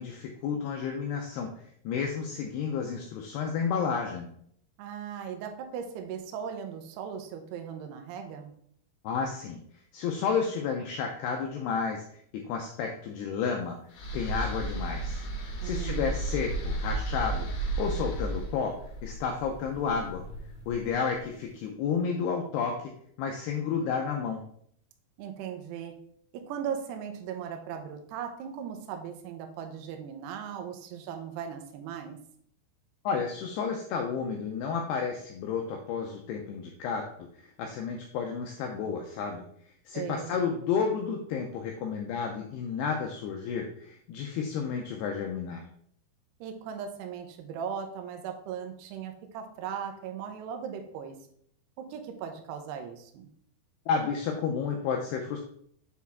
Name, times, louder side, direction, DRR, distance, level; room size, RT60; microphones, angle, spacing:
voice 1, 0.0-1.5 1.8-4.3 9.0-9.6 9.9-12.0 12.5-13.8 14.1-15.2 15.6-17.5 17.8-18.7 19.0-20.2 20.7-22.9 23.2-24.4 33.0-37.0 37.4-39.5 39.9-45.6 53.9-55.4, left 6 dB, 90° left, 2 dB, 2.3 m, -31 dB
voice 2, 4.8-8.5 15.6-16.1 25.2-25.9 26.3-32.2 39.9-40.3 46.4-51.2 51.8-53.3, right 7 dB, 80° right, 4 dB, 2.5 m, -38 dB
sound 1, 13.9-21.1, right 2 dB, 65° left, 2.6 m, -34 dB
7.1 x 4.7 x 3.4 m, 0.65 s
omnidirectional pair, 5.5 m